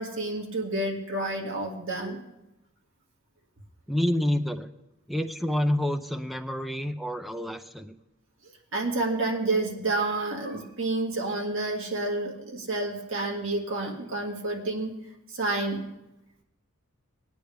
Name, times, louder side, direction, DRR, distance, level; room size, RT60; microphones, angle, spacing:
voice 1, 0.0-2.2 8.7-15.0 15.3-15.9, right 2 dB, 60° right, -1 dB, 1.9 m, -29 dB
voice 2, 3.9-4.7 5.1-8.0, left 1 dB, ahead, 6 dB, 0.5 m, -28 dB
18.5 x 9.4 x 3.4 m, 0.93 s
head